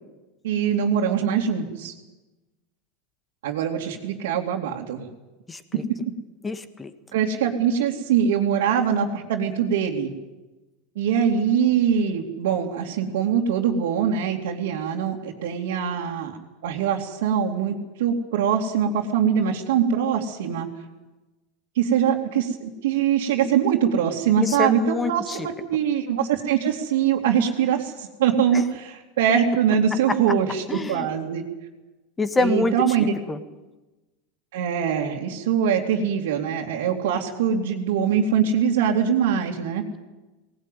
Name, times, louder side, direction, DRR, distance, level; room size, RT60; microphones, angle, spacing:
voice 1, 0.4-1.9 3.4-5.0 5.7-5.8 7.1-10.1 11.0-16.4 16.6-20.7 21.7-31.4 32.4-33.1 34.5-39.8, right 8 dB, 85° right, -3 dB, 2.7 m, -23 dB
voice 2, 5.5-5.8 6.4-6.9 24.4-25.1 30.7-31.1 32.2-32.7 33.3-33.4, left 3 dB, 15° left, 10 dB, 1.8 m, -25 dB
19.0 x 19.0 x 9.3 m, 1.1 s
supercardioid pair, 130°, 0 cm